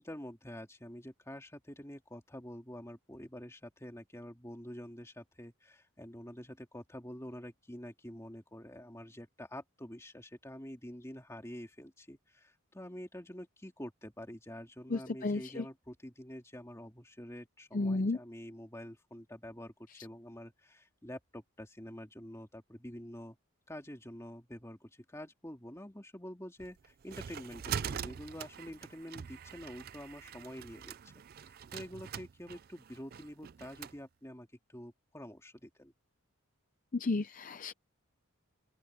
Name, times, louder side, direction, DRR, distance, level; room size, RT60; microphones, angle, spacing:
voice 1, 0.0-23.4 23.7-35.9, equal, 15° left, 2.5 m, -47 dB
voice 2, 14.9-15.6 17.7-18.2 36.9-37.7, left 3 dB, 35° left, 0.5 m, -32 dB
sound 1, 26.6-34.0, right 8 dB, 45° right, 0.4 m, -43 dB
open air
head